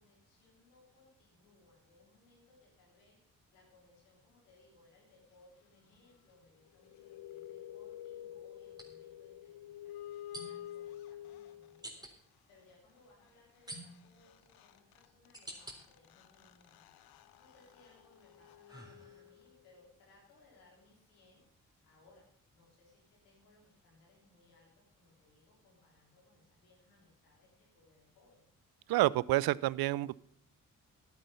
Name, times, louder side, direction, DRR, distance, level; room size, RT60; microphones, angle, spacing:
voice 1, 0.0-3.2 3.5-22.3 22.5-28.4, left 2 dB, 90° left, -2 dB, 4.0 m, -66 dB
sound 1, 5.9-6.0 8.7-8.9 10.3-10.8 11.8-12.1 13.7-14.2 14.8-15.8 16.3-17.0 17.5-19.5, right 1 dB, 10° right, 3.5 m, -50 dB
sound 2, 6.7-12.1 13.9-14.0 14.2-19.7, left 12 dB, 70° left, 0.7 m, -49 dB
voice 2, 28.9-30.2, right 18 dB, 70° right, 23 dB, 0.5 m, -29 dB
11.5 x 9.5 x 5.7 m, 0.64 s
hypercardioid pair, 40°, 38 cm